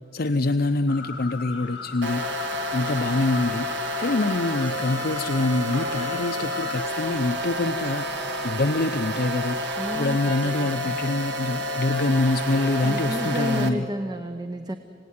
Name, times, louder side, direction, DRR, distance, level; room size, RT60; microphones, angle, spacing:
voice 1, 0.1-2.3 2.7-3.7 4.0-13.9, left 2 dB, 55° left, 7 dB, 0.7 m, -25 dB
sound 1, 0.9-6.9, left 5 dB, 75° left, 1.8 m, -38 dB
sound 2, 2.0-13.7, equal, 65° right, 1.7 m, -29 dB
voice 2, 9.8-10.2 12.8-14.8, equal, 20° right, 7 dB, 0.8 m, -31 dB
27.0 x 18.0 x 9.4 m, 2.6 s
head